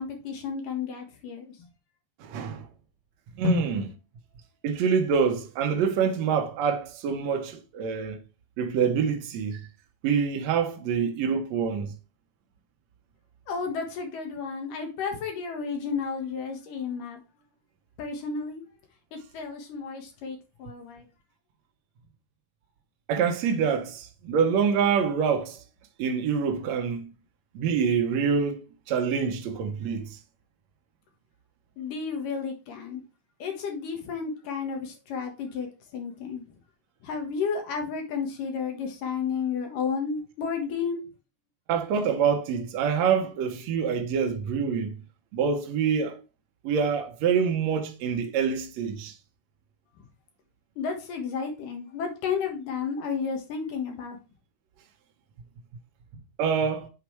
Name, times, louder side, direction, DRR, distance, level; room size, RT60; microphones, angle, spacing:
voice 1, 0.0-1.5 3.4-3.6 13.5-17.2 18.0-18.6 19.1-21.1 31.8-33.0 33.4-35.7 35.9-36.5 37.0-41.0 50.0-50.1 50.8-54.2, left 5 dB, 65° left, 3.0 m, -32 dB
voice 2, 2.2-2.7 3.4-3.8 4.6-8.2 8.6-9.7 10.0-11.9 23.1-25.6 26.0-27.1 27.5-28.6 28.9-30.2 41.7-44.9 45.3-46.2 46.6-49.1 56.4-56.9, right 6 dB, 75° right, 1.6 m, -26 dB
8.2 x 4.1 x 4.6 m
omnidirectional pair, 4.2 m